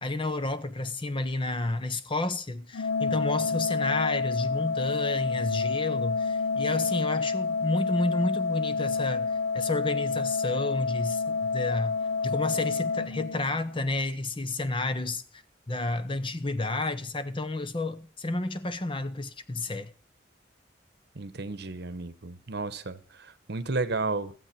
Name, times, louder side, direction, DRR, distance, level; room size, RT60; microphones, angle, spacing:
voice 1, 0.0-12.0 12.2-15.4 15.7-19.9, left 2 dB, 25° left, 0.8 m, -31 dB
Organ, 2.7-13.8, left 4 dB, 75° left, 0.6 m, -29 dB
voice 2, 21.1-24.3, right 3 dB, 60° right, 1.0 m, -33 dB
16.0 x 7.8 x 5.9 m
head